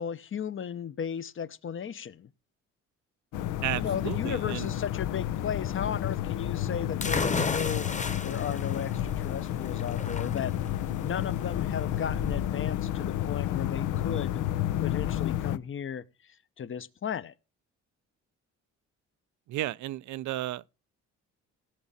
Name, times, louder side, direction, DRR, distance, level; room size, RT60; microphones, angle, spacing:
voice 1, 0.0-2.3 3.8-7.9 8.2-10.5 11.0-14.4 14.8-17.3, left 8 dB, 40° left, 0.8 m, -35 dB
sound 1, 3.3-15.6, left 12 dB, 90° left, 0.8 m, -31 dB
voice 2, 3.6-4.7 19.5-20.6, right 15 dB, 75° right, 0.6 m, -33 dB
sound 2, 7.0-14.5, left 4 dB, 25° left, 1.2 m, -35 dB
17.5 x 6.2 x 4.1 m
cardioid pair, 90°, 30 cm